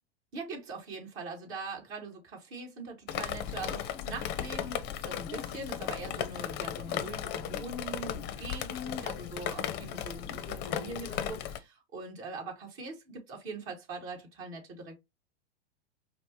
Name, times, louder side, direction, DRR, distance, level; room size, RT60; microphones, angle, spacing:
voice 1, 0.3-15.0, right 3 dB, 40° right, 1.7 m, -42 dB
Drip, 3.1-11.6, left 10 dB, 35° left, 0.5 m, -36 dB
5.0 x 2.1 x 2.8 m
hypercardioid pair, 120°, 32 cm